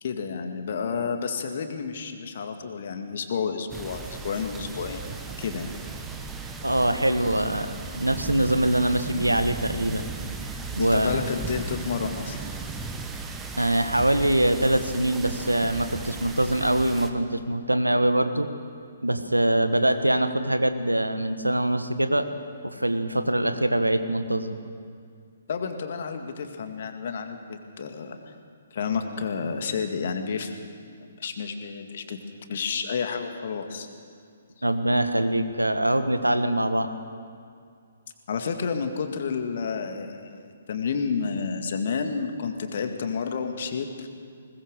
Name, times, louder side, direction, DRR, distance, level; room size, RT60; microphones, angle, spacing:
voice 1, 0.0-5.0 5.4-5.7 10.8-12.4 25.5-28.3 28.7-30.7 31.2-32.2 32.5-33.9 38.3-44.1, left 5 dB, 50° left, 6 dB, 2.1 m, -30 dB
sound 1, 3.7-17.1, right 4 dB, 10° right, 1.4 m, -36 dB
voice 2, 6.6-7.7 7.9-10.0 10.7-11.2 13.6-18.5 19.0-22.3 22.6-24.6 34.6-36.9, right 1 dB, 85° right, 9 dB, 1.4 m, -23 dB
21.0 x 20.0 x 6.6 m, 2.3 s
figure-of-eight pair, 130°, 0 cm